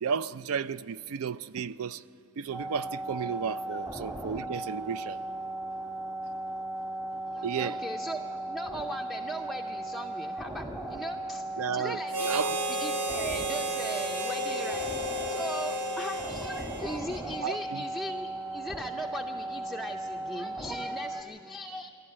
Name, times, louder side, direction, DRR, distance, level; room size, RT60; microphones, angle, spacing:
voice 1, 0.0-2.0 2.4-5.2 7.4-7.8 11.6-12.6 17.4-17.8, right 6 dB, 65° right, 0.4 m, -33 dB
sound 1, 2.5-21.2, right 1 dB, 15° right, 1.5 m, -37 dB
voice 2, 7.3-12.3 12.7-15.0 15.3-21.9, equal, ahead, 0.5 m, -39 dB
Harmonica, 12.1-17.6, right 1 dB, 85° right, 2.1 m, -33 dB
27.0 x 11.5 x 8.6 m
head